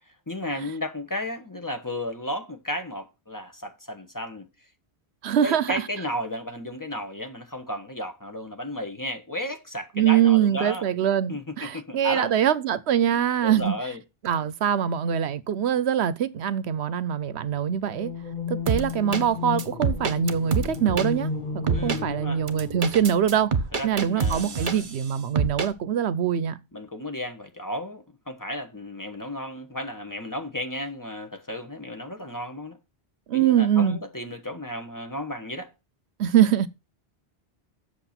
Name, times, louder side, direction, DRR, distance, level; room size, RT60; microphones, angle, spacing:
voice 1, 0.3-4.5 5.4-10.8 11.3-12.3 13.4-14.0 21.7-22.4 23.7-24.9 26.7-32.8 33.3-35.7, left 1 dB, 20° left, 1.3 m, -33 dB
voice 2, 5.2-5.8 10.0-13.7 14.2-18.1 18.5-21.3 21.5-23.5 23.8-26.6 33.3-34.0 36.2-36.7, right 9 dB, 80° right, 1.0 m, -23 dB
sound 1, 17.8-23.8, left 4 dB, 50° left, 1.4 m, -34 dB
sound 2, 18.7-19.2 19.6-21.1 21.7-22.0 22.5-25.0 25.4-25.7, right 5 dB, 50° right, 1.1 m, -26 dB
8.0 x 6.8 x 5.8 m
omnidirectional pair, 1.1 m